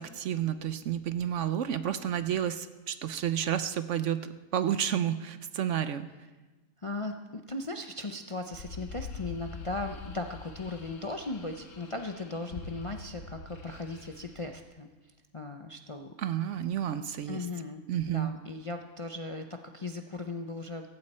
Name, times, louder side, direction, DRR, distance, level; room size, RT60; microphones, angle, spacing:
voice 1, 0.0-6.1 16.2-17.4 17.9-18.4, right 10 dB, 65° right, 12 dB, 0.9 m, -31 dB
voice 2, 6.8-14.9 15.3-16.1 17.3-20.9, left 2 dB, 35° left, 5 dB, 0.5 m, -37 dB
sound 1, 8.5-14.6, left 4 dB, 65° left, 1.6 m, -44 dB
16.5 x 16.0 x 4.3 m, 1.2 s
omnidirectional pair, 1.5 m